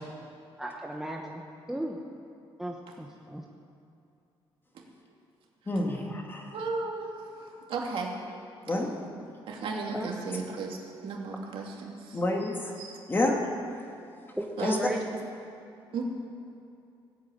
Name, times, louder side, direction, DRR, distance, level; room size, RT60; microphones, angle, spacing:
voice 1, 0.6-1.4 1.7-2.0 2.6-3.4 9.9-10.1 14.4-15.0, right 1 dB, 5° right, 0 dB, 1.0 m, -35 dB
voice 2, 5.7-6.5 8.7-8.9 12.1-12.7 13.1-13.4 14.6-14.8, left 2 dB, 20° left, 1 dB, 2.1 m, -28 dB
voice 3, 6.5-8.2 8.7-8.8 9.5-12.2 12.8-13.0 14.6-15.2 15.9-16.0, right 4 dB, 70° right, 0 dB, 2.5 m, -35 dB
16.0 x 8.5 x 8.8 m, 2.6 s
cardioid pair, 130°, 10 cm